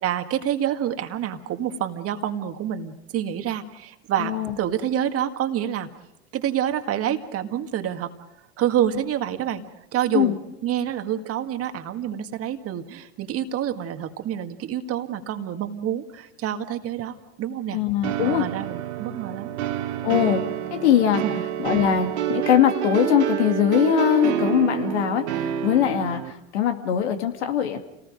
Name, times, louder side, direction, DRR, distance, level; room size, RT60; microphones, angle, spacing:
voice 1, 0.0-5.9 6.3-8.1 8.6-9.6 9.9-10.4 10.6-17.8 18.2-19.5 20.1-20.2 21.2-21.3, right 10 dB, 40° right, 7 dB, 1.9 m, -27 dB
voice 2, 4.2-4.6 10.1-10.4 17.7-18.5 20.0-20.4 20.7-21.2 21.6-27.8, left 10 dB, 70° left, 6 dB, 2.3 m, -21 dB
sound 1, 18.0-26.3, right 10 dB, 70° right, 2.1 m, -28 dB
29.5 x 19.0 x 5.1 m, 0.83 s
hypercardioid pair, 85°, 35 cm